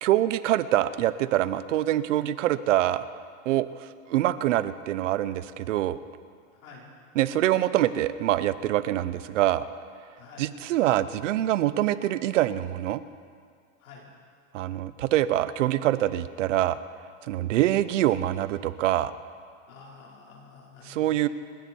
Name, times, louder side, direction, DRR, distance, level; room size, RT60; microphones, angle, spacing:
voice 1, 0.0-3.1 3.5-6.0 7.2-9.6 10.4-13.0 14.5-16.8 17.3-19.1 20.8-21.3, right 13 dB, 65° right, 14 dB, 0.8 m, -25 dB
voice 2, 6.5-6.8 10.2-10.5 13.8-14.0 19.7-21.2, left 5 dB, 85° left, -3 dB, 4.9 m, -49 dB
29.5 x 10.0 x 4.6 m, 2.1 s
supercardioid pair, 175°, 41 cm